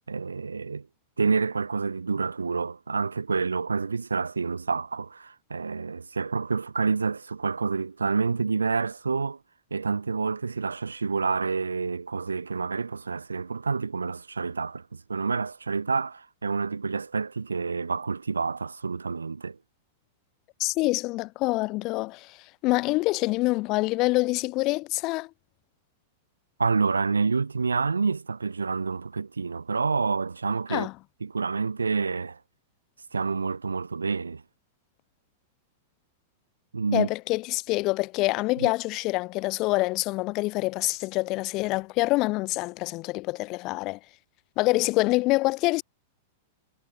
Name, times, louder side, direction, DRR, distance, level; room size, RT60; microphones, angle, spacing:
voice 1, 0.1-0.9 1.2-9.4 9.7-19.6 26.6-30.9 31.2-32.4 33.1-34.4 36.7-37.1 38.6-38.7, right 4 dB, 80° right, 1.7 m, -28 dB
voice 2, 20.6-22.4 22.6-25.3 30.7-30.9 36.9-44.0 44.6-45.8, left 22 dB, 40° left, 3.8 m, -26 dB
figure-of-eight pair, 95°, 0 cm